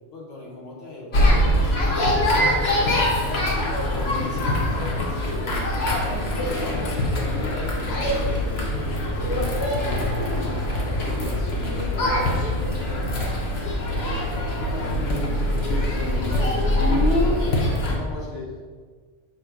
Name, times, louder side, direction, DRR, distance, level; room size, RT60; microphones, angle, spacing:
voice 1, 0.1-3.5 4.2-8.6 9.1-12.4 13.4-13.8 14.0-14.2 14.7-15.1 15.4-17.4 17.8-18.6, left 2 dB, 75° left, -3 dB, 1.9 m, -39 dB
sound 1, 1.1-17.9, left 1 dB, 60° left, 1.3 m, -23 dB
Animal, 4.0-5.1 5.8-6.9 7.7-8.7, equal, 5° left, 0.7 m, -41 dB
7.6 x 3.3 x 5.2 m, 1.5 s
omnidirectional pair, 1.3 m